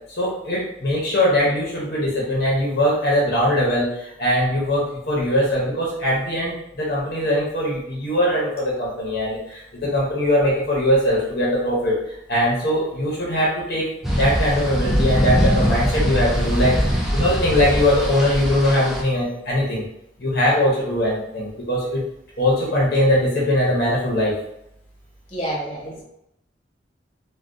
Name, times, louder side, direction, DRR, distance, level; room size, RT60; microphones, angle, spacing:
voice 1, 0.2-13.9 14.2-19.8 20.2-22.0 22.4-24.4, left 1 dB, 60° left, -5 dB, 0.9 m, -21 dB
sound 1, 14.0-19.0, equal, ahead, 0.5 m, -22 dB
voice 2, 25.3-26.0, right 1 dB, 35° left, -5 dB, 1.0 m, -28 dB
3.4 x 2.3 x 2.5 m, 0.81 s
head